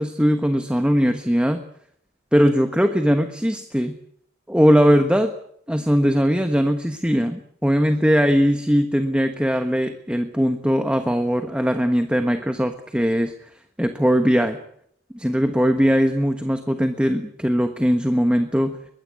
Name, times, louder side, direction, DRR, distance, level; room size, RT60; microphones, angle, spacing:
voice 1, 0.0-1.6 2.3-3.9 4.5-5.3 5.7-13.3 13.8-14.6 15.1-18.8, equal, 5° right, 7 dB, 1.3 m, -20 dB
22.5 x 20.5 x 8.4 m, 0.68 s
head